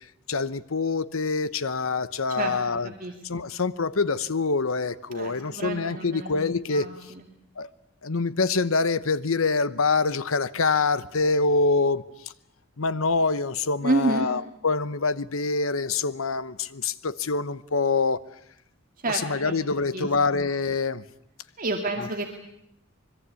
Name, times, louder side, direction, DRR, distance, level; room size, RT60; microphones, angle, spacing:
voice 1, 0.3-2.9 3.2-6.9 7.6-7.7 8.0-12.0 12.8-18.2 19.1-21.0, left 4 dB, 85° left, 1.0 m, -25 dB
voice 2, 2.8-3.4 5.1-6.3 6.7-7.3 13.8-14.3 19.0-19.5 19.9-20.1 21.6-22.3, right 2 dB, 45° right, 2.2 m, -29 dB
25.0 x 22.0 x 8.3 m
head